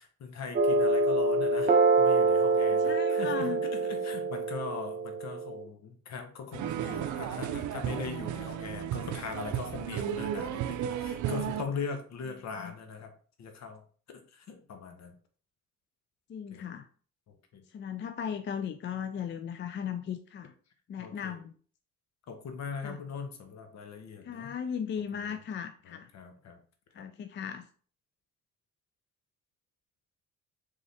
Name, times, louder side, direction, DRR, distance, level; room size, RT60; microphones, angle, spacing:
voice 1, 0.0-1.7 2.0-13.1 13.4-13.8 14.1-15.1 16.5-16.6 17.5-17.6 21.0-21.4 22.3-24.5 25.1-25.4 25.8-26.6 27.0-27.1, left 5 dB, 65° left, 6 dB, 1.0 m, -40 dB
sound 1, 0.5-5.6, right 3 dB, 30° right, 0.8 m, -26 dB
voice 2, 2.8-3.6 12.6-12.7 16.3-16.9 17.7-20.5 20.9-21.5 22.8-23.0 24.2-26.1 26.9-27.7, left 8 dB, 40° left, 9 dB, 0.4 m, -37 dB
sound 2, 6.5-11.6, right 10 dB, 75° right, 0.5 m, -34 dB
4.0 x 3.6 x 3.5 m, 0.43 s
cardioid pair, 90°, 30 cm